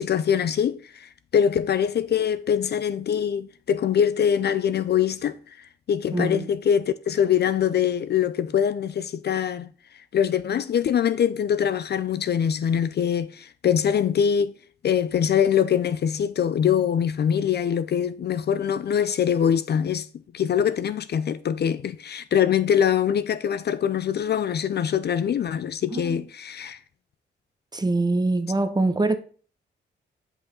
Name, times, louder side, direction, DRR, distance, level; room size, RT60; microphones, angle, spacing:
voice 1, 0.0-9.7 10.1-14.6 14.8-20.1 20.3-26.8, left 8 dB, 55° left, 0.4 m, -23 dB
voice 2, 6.1-6.5 25.9-26.2 27.7-29.2, right 2 dB, 20° right, 0.9 m, -24 dB
5.2 x 5.1 x 5.3 m
cardioid pair, 60°, 20 cm